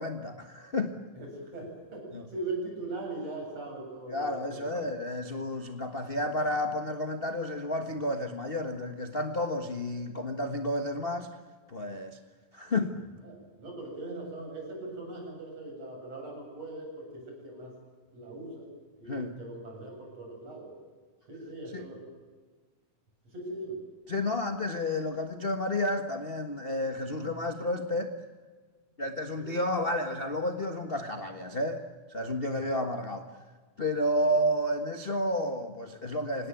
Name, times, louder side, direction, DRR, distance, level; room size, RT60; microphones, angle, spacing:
voice 1, 0.0-0.9 2.1-2.2 4.1-11.3 11.7-12.2 12.5-12.9 19.1-19.4 21.7-21.8 24.1-28.1 29.0-31.8 32.1-33.3 33.8-36.5, left 1 dB, 35° left, 5 dB, 0.8 m, -31 dB
voice 2, 1.1-4.9 13.2-17.7 18.1-20.8 21.3-22.1 23.2-23.8 29.4-29.5, right 2 dB, 55° right, 1 dB, 9.1 m, -40 dB
26.5 x 18.5 x 9.3 m, 1.4 s
omnidirectional pair, 3.4 m